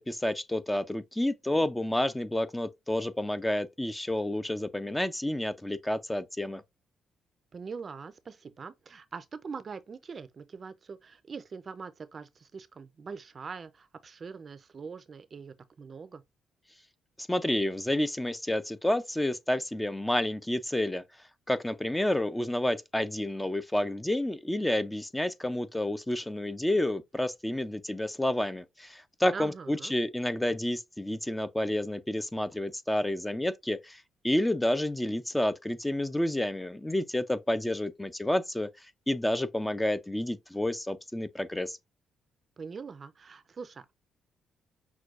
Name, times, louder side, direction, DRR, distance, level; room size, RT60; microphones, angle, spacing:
voice 1, 0.1-6.6 17.3-21.0 21.5-38.7 39.1-41.8, left 1 dB, 10° left, 0.4 m, -30 dB
voice 2, 7.5-16.2 29.3-29.9 42.6-43.9, right 5 dB, 40° right, 0.5 m, -43 dB
6.0 x 2.2 x 2.4 m
cardioid pair, 90°, 0 cm